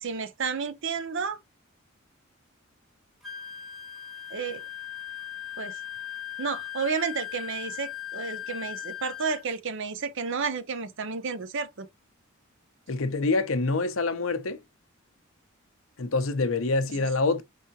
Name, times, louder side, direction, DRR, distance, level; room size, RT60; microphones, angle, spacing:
voice 1, 0.0-1.4 4.3-4.6 5.6-5.7 6.4-11.9 16.9-17.1, right 5 dB, 65° right, 0.7 m, -31 dB
Wind instrument woodwind instrument, 3.2-9.5, left 12 dB, ahead, 0.8 m, -38 dB
voice 2, 12.9-14.6 16.0-17.4, left 3 dB, 75° left, 0.8 m, -26 dB
4.9 x 3.5 x 2.7 m
head